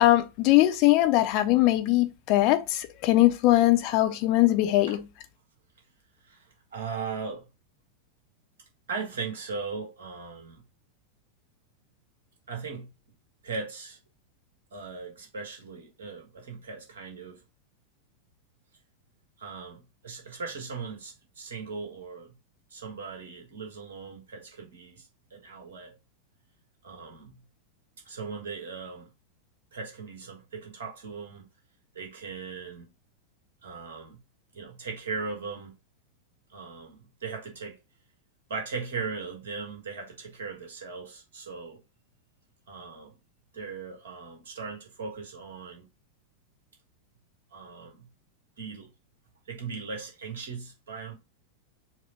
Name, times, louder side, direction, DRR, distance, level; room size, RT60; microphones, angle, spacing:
voice 1, 0.0-5.0, left 16 dB, 40° left, 0.5 m, -21 dB
voice 2, 6.2-7.5 8.9-10.6 12.5-12.9 13.4-14.0 14.7-17.4 19.4-22.3 22.7-25.9 26.8-27.4 28.0-29.1 29.7-31.5 31.9-32.9 33.6-34.2 34.5-35.7 36.5-37.8 38.5-41.8 42.7-43.1 43.5-45.9 47.5-48.1 48.6-48.9 49.5-51.1, right 5 dB, 65° right, 1.3 m, -38 dB
4.6 x 2.1 x 4.3 m
figure-of-eight pair, 90°, 0 cm